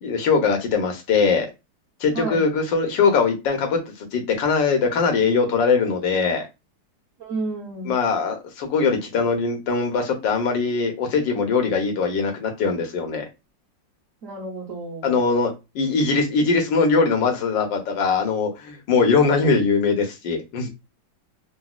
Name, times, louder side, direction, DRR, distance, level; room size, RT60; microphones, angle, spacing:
voice 1, 0.0-1.5 2.0-6.5 7.9-13.2 15.0-20.7, left 4 dB, 85° left, 1.6 m, -21 dB
voice 2, 2.1-2.4 7.2-8.0 14.2-15.2, right 3 dB, 50° right, 1.2 m, -31 dB
3.9 x 2.3 x 2.3 m
omnidirectional pair, 2.0 m